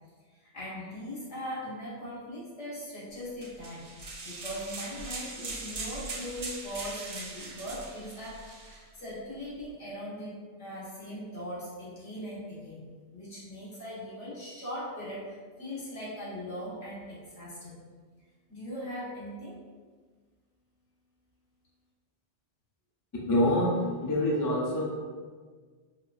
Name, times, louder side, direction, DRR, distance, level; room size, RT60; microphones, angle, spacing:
voice 1, 0.3-3.9 4.2-12.8 13.1-17.8 18.5-19.6, equal, 75° left, -9 dB, 1.6 m, -40 dB
sound 1, 3.4-8.8, right 3 dB, 55° right, 0.4 m, -40 dB
voice 2, 23.3-24.8, left 1 dB, 35° left, -3 dB, 0.3 m, -26 dB
4.7 x 2.5 x 2.4 m, 1.5 s
omnidirectional pair, 1.2 m